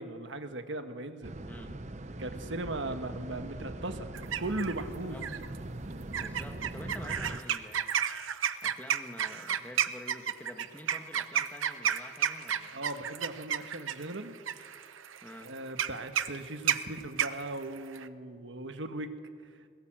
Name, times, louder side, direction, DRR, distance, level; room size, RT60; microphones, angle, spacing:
voice 1, 0.0-1.3 2.2-4.1 4.4-5.2 12.7-14.4 15.4-19.1, right 2 dB, 70° right, 8 dB, 1.5 m, -38 dB
sound 1, 1.2-7.4, right 1 dB, 35° right, 0.8 m, -41 dB
voice 2, 1.5-1.8 2.9-3.0 5.1-5.3 6.1-8.0 8.3-12.9 15.2-15.5, left 1 dB, 10° left, 5 dB, 1.5 m, -48 dB
sound 2, 4.1-4.8 5.2-5.6 6.1-18.1, right 9 dB, 85° right, 0.8 m, -32 dB
22.0 x 17.5 x 7.6 m, 2.1 s
head